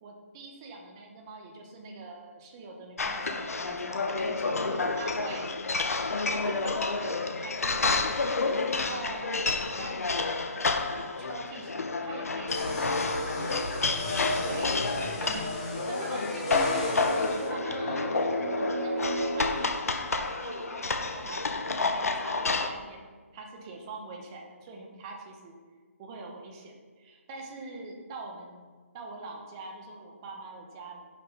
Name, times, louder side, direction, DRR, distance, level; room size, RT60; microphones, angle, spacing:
voice 1, 0.0-5.9 6.3-8.0 8.7-13.6 14.4-15.5 15.9-17.0 17.4-23.0 23.3-25.5 26.0-28.7 28.9-31.1, right 3 dB, 15° right, 0 dB, 0.7 m, -43 dB
sound 1, 3.0-22.7, left 3 dB, 80° left, 0.7 m, -30 dB
sound 2, 12.5-17.5, left 1 dB, 25° left, 0.9 m, -33 dB
sound 3, 16.8-20.7, right 1 dB, 55° right, 1.6 m, -34 dB
6.1 x 5.9 x 5.4 m, 1.5 s
hypercardioid pair, 175°, 8 cm